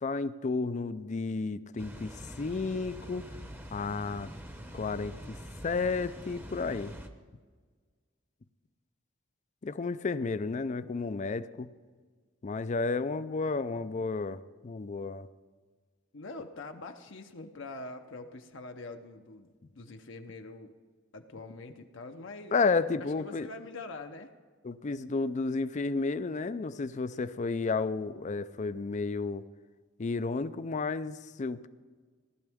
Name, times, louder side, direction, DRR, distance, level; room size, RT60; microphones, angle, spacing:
voice 1, 0.0-3.3 3.7-4.3 4.7-5.4 5.6-6.9 9.6-11.7 12.4-15.3 22.5-23.5 24.6-29.4 30.0-31.7, left 4 dB, 35° left, 14 dB, 0.4 m, -32 dB
Water, 1.8-7.1, equal, 10° right, 0.8 m, -45 dB
voice 2, 16.1-20.7 21.1-22.5 23.0-24.3, left 3 dB, 60° left, 5 dB, 0.7 m, -44 dB
18.0 x 11.5 x 3.5 m, 1.5 s
head